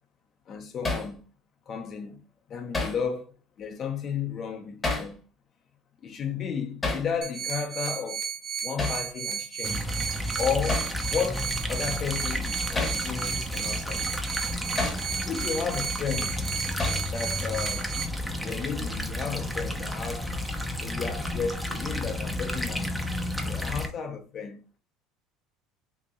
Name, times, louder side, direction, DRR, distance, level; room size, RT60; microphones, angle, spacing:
voice 1, 0.5-1.2 1.7-2.2 2.5-5.2 6.0-8.2 8.6-9.9 10.4-14.1 15.2-16.4 17.1-17.9 18.4-20.3 20.8-23.1 23.4-24.6, left 6 dB, 40° left, 0.7 m, -33 dB
Hammer, 0.8-1.1 2.7-3.0 4.8-5.1 6.8-7.1 8.8-9.0 10.7-10.9 12.7-13.0 14.8-15.0 16.8-17.1, left 3 dB, 20° left, 1.0 m, -29 dB
sound 1, 7.2-18.0, right 7 dB, 45° right, 0.9 m, -33 dB
sound 2, 9.6-23.9, left 1 dB, ahead, 0.6 m, -32 dB
2.9 x 2.6 x 3.8 m
cardioid pair, 125°, 0 cm